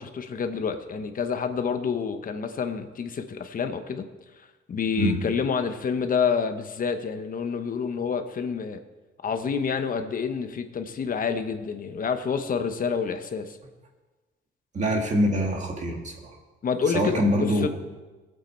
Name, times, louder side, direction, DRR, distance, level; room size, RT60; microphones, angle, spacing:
voice 1, 0.0-4.1 4.7-8.8 9.2-13.6 16.6-17.7, left 6 dB, 40° left, 8 dB, 1.0 m, -28 dB
voice 2, 14.7-16.3 16.9-17.7, equal, 35° right, 1 dB, 2.0 m, -24 dB
19.0 x 7.8 x 4.5 m, 1.2 s
wide cardioid pair, 170°, 21 cm